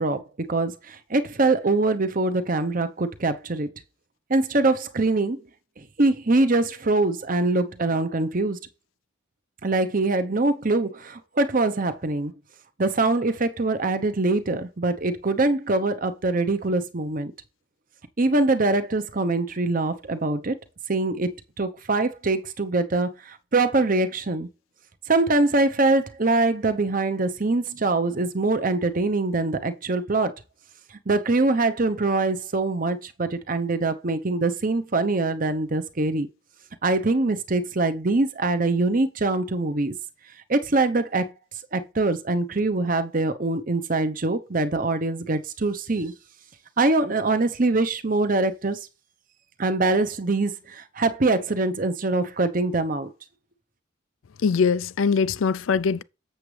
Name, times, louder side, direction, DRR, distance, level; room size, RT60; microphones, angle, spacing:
voice 1, 0.0-3.7 4.3-5.4 5.8-8.6 9.6-12.3 12.8-17.3 18.2-20.6 20.9-21.3 21.6-24.5 25.1-30.3 31.1-36.3 36.8-40.0 40.5-41.3 41.7-46.1 46.8-48.8 49.6-53.1, right 2 dB, 45° right, 0.9 m, -23 dB
voice 2, 54.4-56.0, left 5 dB, 80° left, 0.4 m, -22 dB
7.7 x 7.2 x 3.3 m
head